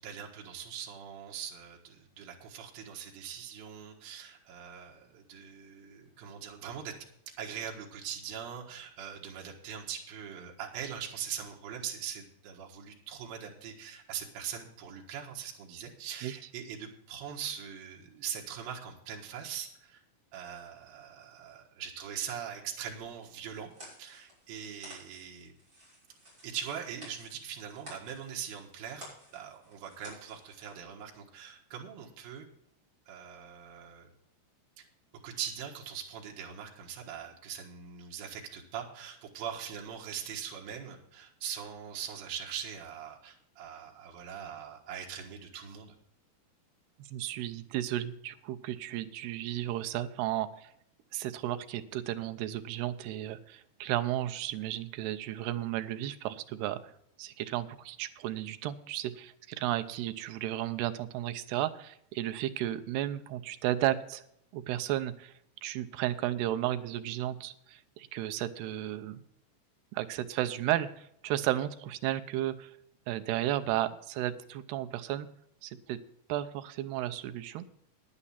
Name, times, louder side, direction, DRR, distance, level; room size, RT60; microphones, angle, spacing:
voice 1, 0.0-6.9 7.4-20.0 20.3-23.7 24.0-25.5 26.4-29.1 29.3-32.5 33.1-34.1 35.2-45.9, right 8 dB, 70° right, 0 dB, 3.2 m, -41 dB
sound 1, 23.2-30.8, equal, 25° right, 6.5 m, -53 dB
voice 2, 47.1-50.7 51.1-56.9 57.2-64.2 64.5-65.3 65.6-69.2 69.9-72.7 73.1-75.3 75.6-76.0 76.3-77.7, right 13 dB, 90° right, 10 dB, 2.7 m, -33 dB
10.0 x 9.7 x 5.6 m, 0.72 s
omnidirectional pair, 4.6 m